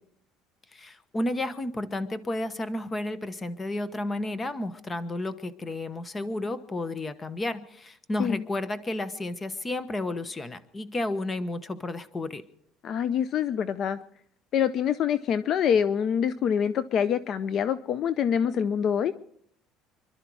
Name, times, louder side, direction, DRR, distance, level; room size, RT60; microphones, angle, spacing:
voice 1, 0.7-12.4, left 2 dB, 20° left, 14 dB, 1.0 m, -32 dB
voice 2, 12.8-14.0 14.5-19.1, left 8 dB, 45° left, 15 dB, 0.6 m, -25 dB
26.0 x 12.0 x 4.7 m, 0.67 s
cardioid pair, 140°, 0 cm